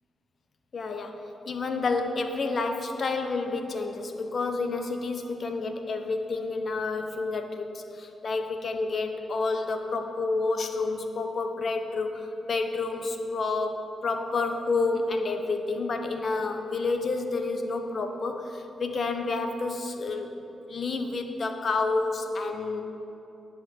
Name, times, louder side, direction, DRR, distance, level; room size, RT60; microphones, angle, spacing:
voice 1, 0.7-1.2 1.5-20.3 20.7-22.8, left 3 dB, 55° left, 6 dB, 1.0 m, -29 dB
11.0 x 5.7 x 8.7 m, 3.0 s
cardioid pair, 80°, 0 cm